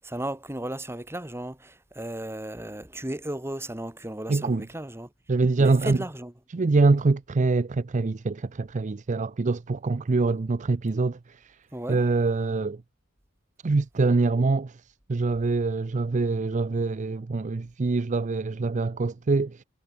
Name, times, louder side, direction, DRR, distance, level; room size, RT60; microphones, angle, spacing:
voice 1, 0.0-5.1 5.6-6.3 11.7-12.0, right 1 dB, 10° right, 2.4 m, -35 dB
voice 2, 4.3-4.6 5.3-6.0 6.5-11.6 11.9-12.8 13.6-14.8 15.1-19.6, right 3 dB, 35° right, 0.5 m, -24 dB
head